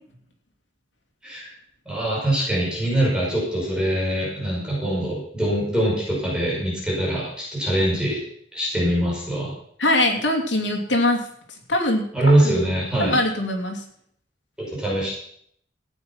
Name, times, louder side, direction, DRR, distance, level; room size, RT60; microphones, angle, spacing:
voice 1, 1.9-8.2 8.5-9.5 12.1-13.2 14.6-15.1, right 1 dB, 5° right, -6 dB, 5.9 m, -23 dB
voice 2, 9.8-11.3 11.7-12.1 12.4-12.6 13.0-13.8, left 1 dB, 75° left, 2 dB, 2.9 m, -22 dB
15.5 x 9.3 x 5.8 m, 0.67 s
head